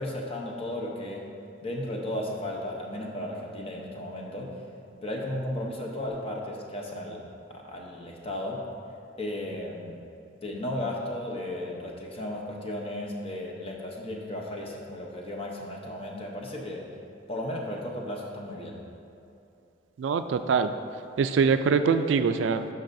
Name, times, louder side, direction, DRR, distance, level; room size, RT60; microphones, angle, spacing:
voice 1, 0.0-1.3 1.6-4.6 5.0-7.2 7.5-8.6 9.2-10.0 10.4-16.8 17.3-18.8, left 1 dB, 30° left, -1 dB, 0.8 m, -35 dB
voice 2, 20.0-20.7 21.2-22.7, right 5 dB, 85° right, 9 dB, 0.3 m, -23 dB
11.5 x 5.4 x 2.6 m, 2.7 s
head